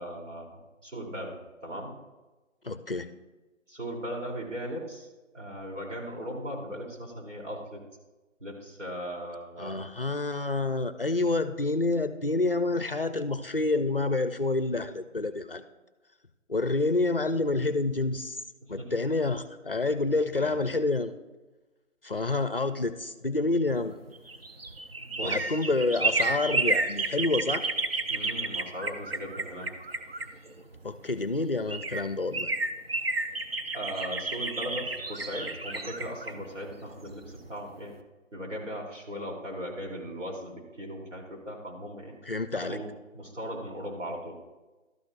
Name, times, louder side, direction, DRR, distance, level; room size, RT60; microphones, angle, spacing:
voice 1, 0.0-1.4 1.6-1.9 3.7-5.1 5.3-7.8 8.4-9.8 18.6-19.1 20.4-20.7 25.0-25.6 28.1-29.7 33.7-37.9 38.3-42.2 42.5-44.4, equal, 70° right, -1 dB, 3.1 m, -38 dB
voice 2, 2.6-3.1 9.6-15.7 16.5-18.4 18.7-21.1 22.0-24.0 25.2-27.7 30.8-32.5 42.2-42.8, left 2 dB, 50° left, 12 dB, 0.5 m, -28 dB
sound 1, 24.0-30.8 31.4-31.5 31.7-37.5 37.8-37.9, right 3 dB, 50° right, 0.7 m, -31 dB
12.5 x 12.0 x 2.5 m, 1.2 s
figure-of-eight pair, 175°, 38 cm